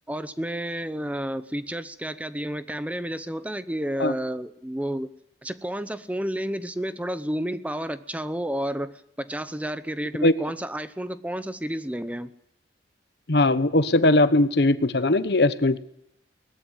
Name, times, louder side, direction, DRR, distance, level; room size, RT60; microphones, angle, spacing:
voice 1, 0.1-5.1 5.4-12.3, equal, 5° right, 13 dB, 0.8 m, -31 dB
voice 2, 13.3-15.8, left 2 dB, 60° left, 14 dB, 1.1 m, -20 dB
20.0 x 14.5 x 10.0 m, 0.79 s
head